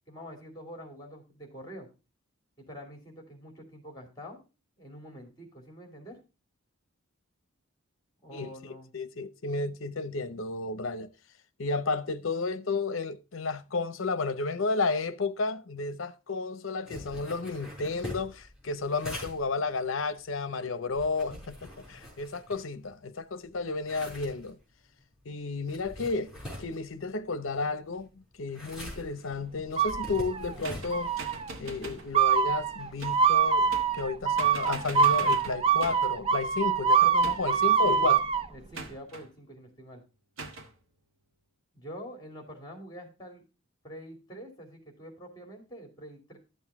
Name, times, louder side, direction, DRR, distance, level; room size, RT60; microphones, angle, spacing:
voice 1, 0.1-1.9 2.6-4.4 4.8-6.2 8.2-8.9 37.8-38.1 38.5-40.0 41.7-43.4 43.8-46.4, equal, 20° left, 2.7 m, -46 dB
voice 2, 8.9-11.1 11.6-24.6 25.3-26.3 26.6-31.1 31.6-33.7 33.9-38.2, left 3 dB, 70° left, 0.7 m, -32 dB
sound 1, 16.9-23.1 23.4-35.0, left 1 dB, 5° right, 4.8 m, -46 dB
sound 2, 29.8-30.5 30.9-31.5 32.1-38.5, right 6 dB, 25° right, 0.5 m, -24 dB
sound 3, 30.6-32.1 33.0-33.3 33.7-34.1 34.4-36.2 37.2-37.7 38.7-39.3 40.4-40.7, right 3 dB, 70° right, 1.4 m, -42 dB
12.0 x 7.1 x 3.5 m
head